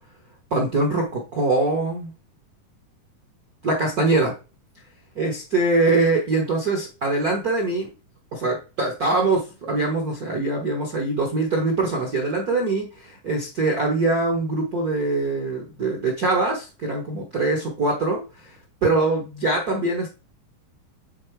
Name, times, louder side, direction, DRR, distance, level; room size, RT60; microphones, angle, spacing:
voice 1, 0.5-2.1 3.6-4.3 5.1-7.9 8.3-20.1, right 2 dB, 75° right, 0 dB, 0.8 m, -23 dB
8.6 x 3.5 x 4.6 m, 0.32 s
omnidirectional pair, 3.7 m